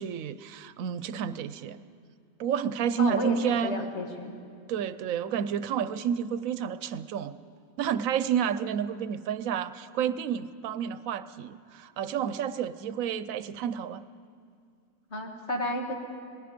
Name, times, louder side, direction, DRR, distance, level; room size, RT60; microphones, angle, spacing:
voice 1, 0.0-1.8 2.4-3.9 4.7-7.4 7.8-14.0, right 8 dB, 80° right, 14 dB, 1.1 m, -30 dB
voice 2, 3.0-4.4 15.1-15.9, left 1 dB, 55° left, 1 dB, 2.4 m, -32 dB
26.5 x 19.0 x 5.1 m, 2.3 s
omnidirectional pair, 1.4 m